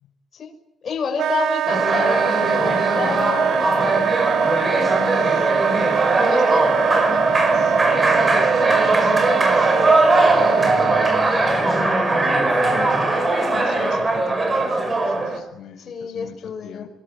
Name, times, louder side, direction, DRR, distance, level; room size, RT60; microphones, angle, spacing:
voice 1, 0.8-4.0 4.7-5.5 6.2-7.8 8.4-11.1 15.9-16.9, left 6 dB, 40° left, 3 dB, 6.3 m, -31 dB
Wind instrument woodwind instrument, 1.2-11.3, right 9 dB, 70° right, 1.2 m, -23 dB
sound 1, 1.7-15.4, right 2 dB, 20° right, 5.6 m, -20 dB
voice 2, 8.5-9.0 12.2-12.6 13.5-16.3 16.6-16.9, left 8 dB, 75° left, 3 dB, 5.5 m, -41 dB
26.0 x 21.5 x 10.0 m, 0.84 s
cardioid pair, 155°, 0 cm